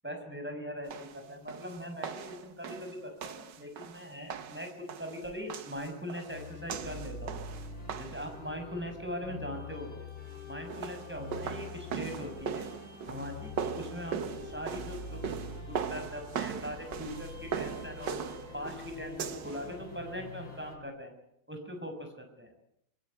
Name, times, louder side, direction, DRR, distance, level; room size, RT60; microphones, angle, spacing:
voice 1, 0.0-7.4 7.9-10.1 10.5-12.7 13.1-15.4 15.7-18.2 18.5-21.1 21.5-22.5, equal, 5° right, 4 dB, 5.9 m, -41 dB
sound 1, 0.9-8.3 10.5-19.7, right 7 dB, 65° right, 1.8 m, -40 dB
sound 2, 6.3-20.8, left 3 dB, 80° left, 9.0 m, -45 dB
25.0 x 18.0 x 9.5 m, 0.77 s
omnidirectional pair, 2.2 m